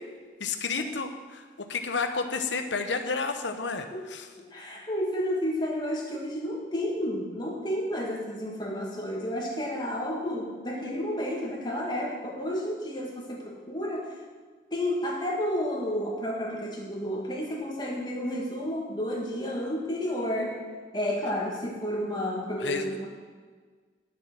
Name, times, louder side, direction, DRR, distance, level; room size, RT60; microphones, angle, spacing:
voice 1, 0.4-4.2 22.6-22.8, left 4 dB, 75° left, 7 dB, 1.0 m, -31 dB
voice 2, 4.4-14.2 14.7-20.6 20.9-23.1, equal, 20° left, -3 dB, 2.1 m, -31 dB
10.5 x 7.2 x 6.3 m, 1.5 s
head